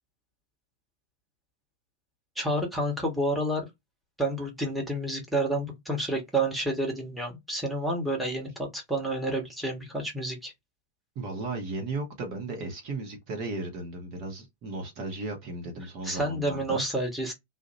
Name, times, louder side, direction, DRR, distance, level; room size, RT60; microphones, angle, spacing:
voice 1, 2.4-3.7 4.2-10.5 16.0-17.3, right 1 dB, ahead, 1.1 m, -29 dB
voice 2, 11.1-16.8, right 2 dB, 40° right, 1.0 m, -35 dB
2.4 x 2.1 x 2.7 m
figure-of-eight pair, 90°, 0 cm